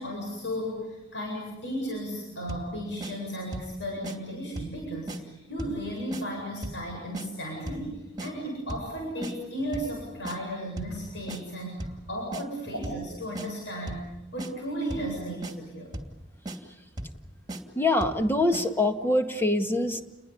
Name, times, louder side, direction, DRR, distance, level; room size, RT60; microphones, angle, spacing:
voice 1, 0.0-16.0, equal, 70° left, 0 dB, 8.0 m, -35 dB
sound 1, 2.5-2.7 3.0-3.1 3.5-3.7 4.0-4.2 4.6-4.8 5.1-5.2 5.6-5.8 6.1-6.2 6.6-6.8 7.1-7.3 7.7-7.9 8.2-8.3 8.7-8.9 9.2-9.3 9.7-10.0 10.2-10.4 10.8-11.0 11.3-11.4 11.8-12.0 12.3-12.4 12.8-13.1 13.4-13.5 13.9-14.1 14.4-14.5 14.9-15.1 15.4-15.5 15.9-16.2 16.5-16.6 17.0-17.2 17.5-17.6 18.0-18.2 18.5-18.7, right 1 dB, 25° right, 2.7 m, -36 dB
voice 2, 17.8-20.0, left 2 dB, 10° left, 6 dB, 1.9 m, -24 dB
30.0 x 21.0 x 8.6 m, 0.94 s
head